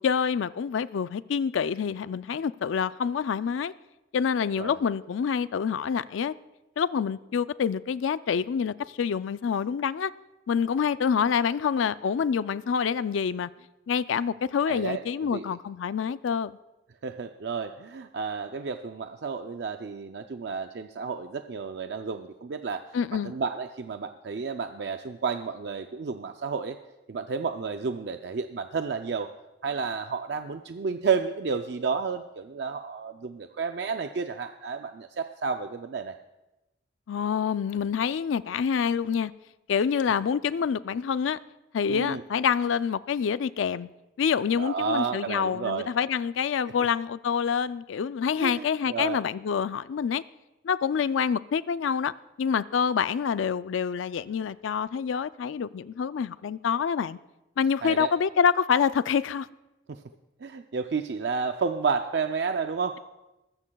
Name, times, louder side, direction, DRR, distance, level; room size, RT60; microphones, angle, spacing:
voice 1, 0.0-3.7 4.1-6.3 6.8-10.1 10.5-13.5 13.9-16.6 22.9-23.3 37.1-39.3 39.7-41.4 41.7-43.9 44.2-50.2 50.6-52.1 52.4-57.2 57.6-59.5, left 7 dB, 85° left, 0.4 m, -27 dB
voice 2, 14.7-15.5 17.0-23.0 23.2-26.8 27.1-29.3 29.6-36.1 41.9-42.2 44.6-45.9 48.4-49.2 57.8-58.1 59.9-60.0 60.4-63.0, right 5 dB, 60° right, 0.4 m, -31 dB
20.5 x 15.0 x 2.3 m
head